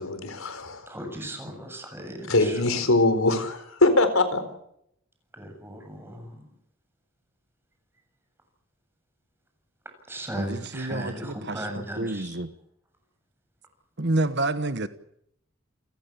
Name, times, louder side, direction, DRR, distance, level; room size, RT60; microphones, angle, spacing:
voice 1, 0.0-0.9 2.3-4.4, left 2 dB, 80° left, 10 dB, 4.4 m, -22 dB
voice 2, 0.9-2.9 5.3-6.4 10.1-12.3, equal, 10° right, 5 dB, 7.8 m, -37 dB
voice 3, 10.3-12.5 14.0-14.9, right 2 dB, 55° right, 12 dB, 1.2 m, -29 dB
29.5 x 16.0 x 8.8 m, 0.74 s
head